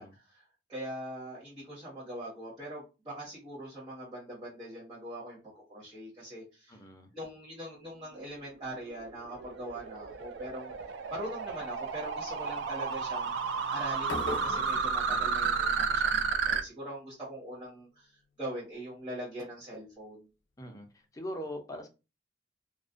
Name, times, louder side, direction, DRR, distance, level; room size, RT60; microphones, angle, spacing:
voice 1, 0.0-6.8 7.1-10.7 11.1-13.3 13.7-20.3, right 1 dB, 25° right, 1.1 m, -42 dB
voice 2, 6.7-7.1 15.0-15.4 20.6-20.9 21.1-21.9, equal, 20° left, 0.4 m, -41 dB
sound 1, 8.6-16.6, right 5 dB, 70° right, 0.3 m, -32 dB
sound 2, 14.0-16.1, left 2 dB, 75° left, 0.6 m, -40 dB
2.4 x 2.1 x 2.4 m
head